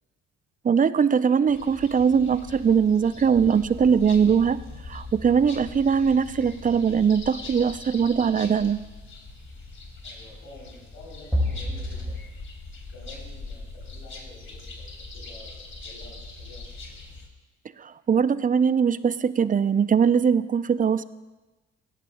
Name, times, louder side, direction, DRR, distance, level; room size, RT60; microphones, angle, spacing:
voice 1, 0.6-4.6 4.9-8.8 17.8-21.0, right 6 dB, 25° right, 16 dB, 0.5 m, -21 dB
sound 1, 1.5-17.3, left 3 dB, 40° left, 2.6 m, -42 dB
sound 2, 3.3-8.8 11.3-12.2, left 1 dB, ahead, 4.3 m, -34 dB
voice 2, 10.0-12.2 12.9-17.0, left 2 dB, 75° left, -3 dB, 4.0 m, -49 dB
17.0 x 13.5 x 2.3 m, 1.2 s
hypercardioid pair, 50°, 31 cm